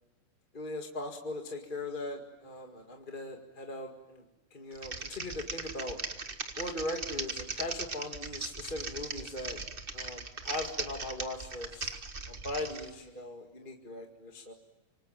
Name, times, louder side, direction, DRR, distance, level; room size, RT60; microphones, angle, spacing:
voice 1, 0.5-4.2 4.5-6.0 6.6-9.6 9.9-11.9 12.3-14.5, left 2 dB, 20° left, 2 dB, 1.6 m, -39 dB
Typing, 4.7-12.9, right 3 dB, 45° right, 0.6 m, -39 dB
26.0 x 25.0 x 8.9 m, 1.0 s
omnidirectional pair, 3.6 m